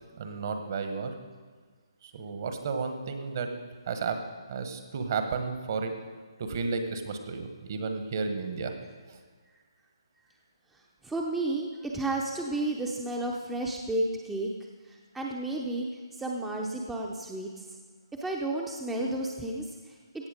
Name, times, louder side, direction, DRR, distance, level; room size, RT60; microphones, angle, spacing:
voice 1, 0.2-1.1 2.0-3.5 3.9-4.2 4.5-5.9 6.4-8.7 9.1-9.2, right 4 dB, 45° right, 6 dB, 1.3 m, -32 dB
voice 2, 10.7-14.5 14.8-17.6 18.2-20.3, right 2 dB, 5° right, -1 dB, 0.6 m, -32 dB
16.0 x 6.8 x 5.2 m, 1.5 s
hypercardioid pair, 155°, 3 cm